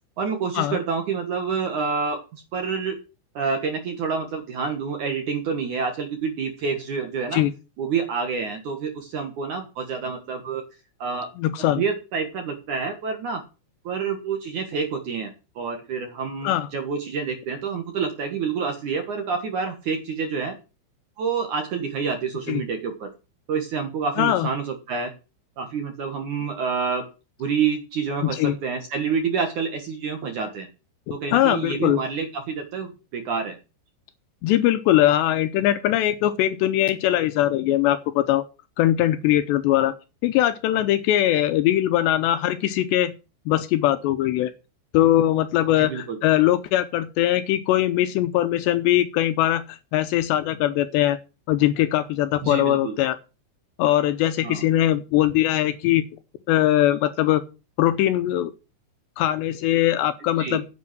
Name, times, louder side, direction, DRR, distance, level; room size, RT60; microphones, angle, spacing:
voice 1, 0.2-3.0 3.3-7.4 7.8-10.6 11.0-11.3 11.8-13.4 13.8-15.3 15.6-20.6 21.2-23.1 23.5-25.1 25.6-27.0 27.4-30.7 31.1-33.6 41.3-41.4 45.8-46.2 52.4-52.9 54.4-54.7 60.4-60.6, right 5 dB, 60° right, 5 dB, 2.1 m, -28 dB
voice 2, 11.4-11.8 16.4-16.7 22.5-22.6 24.2-24.5 28.2-28.6 31.3-32.0 34.4-38.4 38.8-39.9 40.2-43.1 43.5-44.5 44.9-51.2 51.5-53.2 53.8-56.1 56.5-57.4 57.8-58.5 59.2-60.7, left 13 dB, 80° left, 12 dB, 2.7 m, -21 dB
10.0 x 8.5 x 6.1 m, 0.31 s
omnidirectional pair, 5.4 m